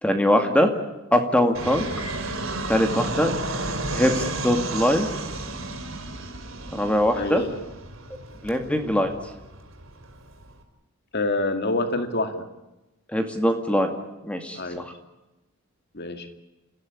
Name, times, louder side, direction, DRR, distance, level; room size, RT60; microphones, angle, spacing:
voice 1, 0.0-0.7 1.1-1.8 2.7-3.3 3.9-5.1 6.7-7.4 8.4-9.1 13.1-13.9 14.2-14.8, equal, 5° left, 5 dB, 2.3 m, -22 dB
Fixed-wing aircraft airplane, 1.5-10.6, right 2 dB, 60° right, 4.8 m, -32 dB
voice 2, 7.2-7.5 11.1-12.4 14.5-14.8 15.9-16.3, left 2 dB, 45° left, 7 dB, 2.3 m, -26 dB
29.5 x 16.0 x 10.0 m, 1.0 s
head